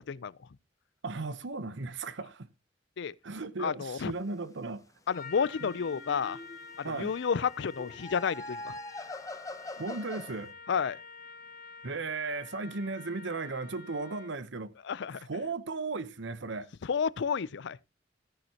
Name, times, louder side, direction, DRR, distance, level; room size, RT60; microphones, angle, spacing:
voice 1, 1.0-2.5 3.2-4.8 5.6-5.7 6.8-7.1 9.8-10.5 11.8-14.7 15.3-16.7, right 3 dB, 65° right, 0.9 m, -36 dB
voice 2, 3.6-4.1 5.1-6.4 6.8-8.8 10.7-11.0 14.8-15.3 16.8-17.8, left 6 dB, 65° left, 0.5 m, -31 dB
Trumpet, 5.1-14.5, left 5 dB, 45° left, 2.2 m, -48 dB
sound 1, 5.7-6.7 7.8-10.4, left 2 dB, 20° left, 0.8 m, -43 dB
14.0 x 10.5 x 2.9 m
head